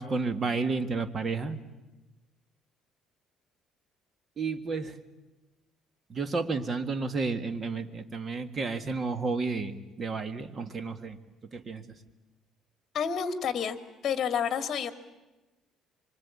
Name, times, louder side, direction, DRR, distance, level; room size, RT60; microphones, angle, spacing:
voice 1, 0.0-1.6 4.4-5.0 6.1-11.2 11.5-12.0, right 4 dB, 35° right, 10 dB, 1.7 m, -31 dB
voice 2, 12.9-13.8 14.0-14.9, left 7 dB, 45° left, 9 dB, 2.1 m, -29 dB
26.0 x 24.5 x 8.5 m, 1.1 s
cardioid pair, 130°, 0 cm